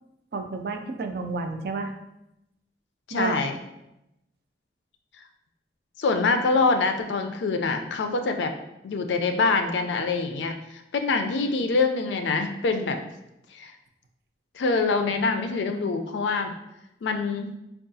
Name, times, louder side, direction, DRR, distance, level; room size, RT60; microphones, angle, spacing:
voice 1, 0.3-1.9 3.1-3.5, right 3 dB, 60° right, 6 dB, 0.3 m, -30 dB
voice 2, 3.1-3.5 6.0-8.5 8.8-13.0 13.5-13.7 14.5-16.5 17.0-17.5, left 4 dB, 80° left, 6 dB, 0.4 m, -25 dB
4.6 x 2.3 x 2.6 m, 0.87 s
head